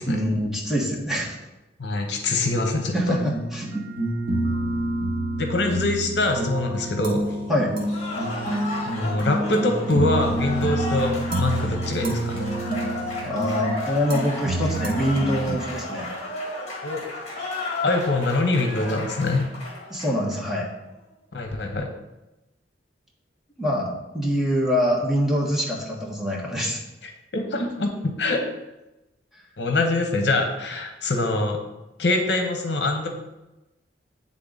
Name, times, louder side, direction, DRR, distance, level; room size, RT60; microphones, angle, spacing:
voice 1, 0.1-1.4 2.9-3.9 7.5-7.7 13.2-16.1 19.9-20.7 23.6-26.8, equal, ahead, -3 dB, 1.1 m, -25 dB
voice 2, 1.8-2.9 5.4-7.3 8.8-12.4 16.8-17.0 17.8-19.5 21.3-21.9 27.0-27.9 28.2-28.4 29.6-31.6 32.0-33.1, left 2 dB, 70° left, 4 dB, 0.9 m, -24 dB
sound 1, 3.1-15.5, right 1 dB, 55° right, 1.2 m, -28 dB
Cheering / Applause, 7.8-20.4, left 2 dB, 40° left, 1.6 m, -33 dB
8.6 x 3.7 x 3.9 m, 0.99 s
head